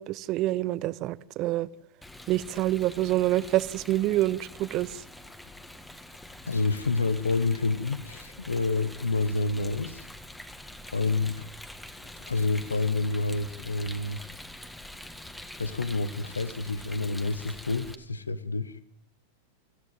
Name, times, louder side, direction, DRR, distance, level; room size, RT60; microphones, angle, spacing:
voice 1, 0.0-1.7 2.3-5.0, right 15 dB, 35° right, 19 dB, 0.8 m, -27 dB
Rain, 2.0-18.0, left 1 dB, 5° left, 1.7 m, -45 dB
voice 2, 6.5-10.1 10.9-11.5 12.0-14.2 15.6-18.8, left 3 dB, 75° left, 14 dB, 1.3 m, -28 dB
25.5 x 15.0 x 9.3 m, 0.76 s
figure-of-eight pair, 90°, 0 cm